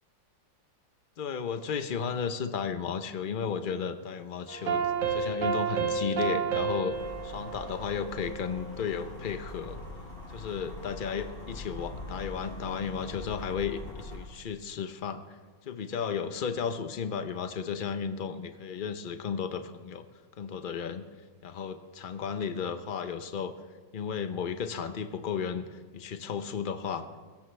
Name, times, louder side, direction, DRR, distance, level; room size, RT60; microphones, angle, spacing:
voice 1, 1.2-4.8 5.1-7.0 7.2-9.8 10.3-15.4 15.7-20.1 20.4-21.0 21.4-23.5 23.9-27.1, left 6 dB, 65° left, 9 dB, 0.5 m, -34 dB
sound 1, 4.5-8.7, right 6 dB, 75° right, 2.0 m, -31 dB
sound 2, 6.9-14.2, left 1 dB, 30° left, 5.7 m, -43 dB
22.5 x 14.0 x 3.3 m, 1.4 s
omnidirectional pair, 1.9 m